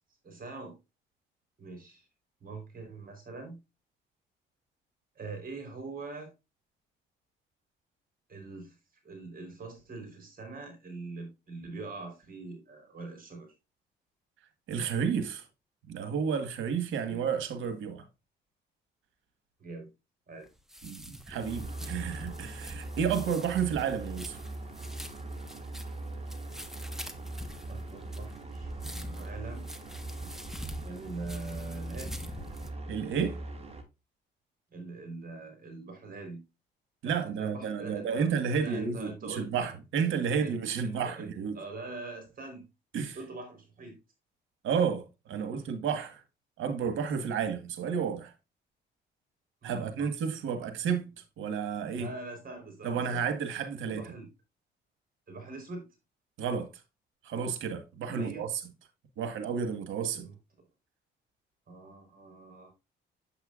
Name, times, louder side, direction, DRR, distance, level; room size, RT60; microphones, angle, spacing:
voice 1, 0.2-0.7 1.6-2.1 2.4-3.6 5.2-6.3 8.3-8.8 9.0-13.5 17.1-17.2 19.6-19.9 20.3-20.5 27.7-29.7 30.8-32.3 34.7-36.4 37.0-39.5 40.2-42.6 43.1-44.0 45.4-45.6 49.6-50.1 51.9-53.2 53.9-54.3 55.3-55.9 58.1-58.4 60.1-60.4 61.7-62.7, right 3 dB, 45° right, 4.1 m, -43 dB
voice 2, 14.7-15.4 15.9-18.0 20.8-24.4 32.9-33.4 37.0-41.6 42.9-43.2 44.6-46.2 46.6-48.3 49.6-51.0 51.4-52.1 52.8-54.0 56.4-56.7 57.2-58.5 59.2-60.3, right 6 dB, 80° right, 1.6 m, -31 dB
sound 1, 20.5-32.7, equal, ahead, 1.2 m, -46 dB
sound 2, 21.3-33.8, right 2 dB, 30° right, 2.2 m, -41 dB
8.0 x 7.7 x 2.5 m
cardioid pair, 90°, 20 cm